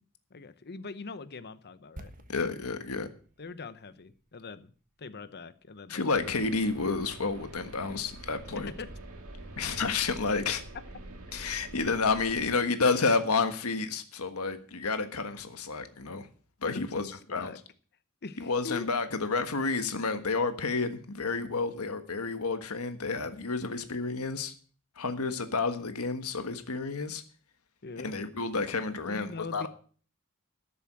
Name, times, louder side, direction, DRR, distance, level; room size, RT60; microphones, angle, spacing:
voice 1, 0.3-2.1 3.4-4.7 5.0-6.1 8.5-8.9 16.6-17.6 18.2-18.9 27.8-28.2 29.1-29.7, left 4 dB, 50° left, 0.9 m, -42 dB
sound 1, 2.0-5.9 6.2-6.3, right 1 dB, 40° right, 1.3 m, -53 dB
voice 2, 2.3-3.1 5.9-8.7 9.6-10.6 11.3-16.3 16.6-17.5 18.4-24.5 25.0-27.2 28.0-29.7, left 4 dB, 90° left, 1.4 m, -30 dB
sound 2, 6.1-12.6, right 1 dB, 85° right, 2.0 m, -46 dB
12.5 x 7.1 x 7.5 m
head